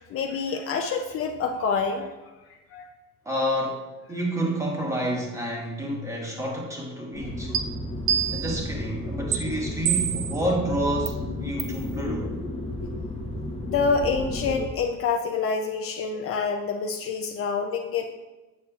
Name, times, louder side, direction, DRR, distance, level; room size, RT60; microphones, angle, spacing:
voice 1, 0.0-2.1 2.7-2.9 13.6-18.1, left 5 dB, 50° left, 4 dB, 0.4 m, -27 dB
voice 2, 3.2-7.6 8.3-12.4, right 1 dB, 10° right, -2 dB, 1.1 m, -29 dB
sound 1, 7.1-14.7, left 1 dB, 20° left, 0.8 m, -33 dB
sound 2, 7.5-7.6 8.1-8.7 9.3-9.4 9.9-10.4 11.1-11.2 11.6-11.8, right 10 dB, 70° right, 0.6 m, -26 dB
sound 3, 11.1-16.4, left 5 dB, 90° left, 0.8 m, -40 dB
8.2 x 6.3 x 2.4 m, 1.1 s
cardioid pair, 165°, 30 cm